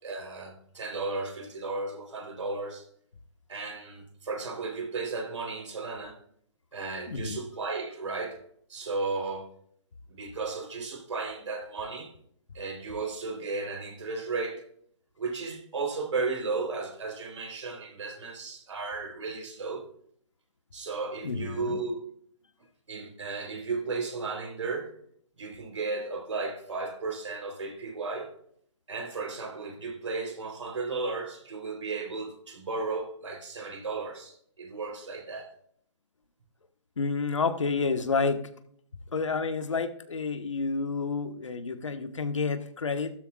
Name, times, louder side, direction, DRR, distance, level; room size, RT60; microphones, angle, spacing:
voice 1, 0.0-2.9 3.5-6.2 6.7-8.4 8.7-9.5 10.1-12.1 12.5-14.6 15.2-19.9 20.7-22.0 22.9-24.9 25.4-28.3 28.9-35.5, right 3 dB, 80° right, 3.7 m, -34 dB
voice 2, 7.1-7.4 21.2-22.0 37.0-38.4 39.1-43.1, left 4 dB, 90° left, 1.4 m, -29 dB
14.5 x 12.5 x 2.4 m
hypercardioid pair, 150°, 15 cm